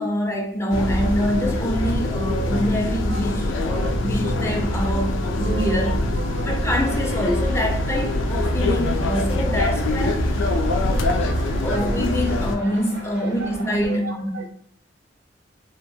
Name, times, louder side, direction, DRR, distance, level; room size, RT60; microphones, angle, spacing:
voice 1, 0.0-6.0 6.4-10.2 11.6-14.5, equal, 15° left, 1 dB, 0.4 m, -25 dB
sound 1, 0.7-12.6, left 1 dB, 90° left, 0.4 m, -23 dB
voice 2, 3.1-3.5 3.7-3.9 4.2-5.0 5.4-5.8 6.2-6.6 10.6-11.1 13.4-13.5 13.8-14.5, right 4 dB, 65° right, 5 dB, 0.4 m, -36 dB
sound 2, 6.5-14.0, right 1 dB, 80° right, 0.8 m, -40 dB
2.8 x 2.2 x 2.6 m, 0.66 s
head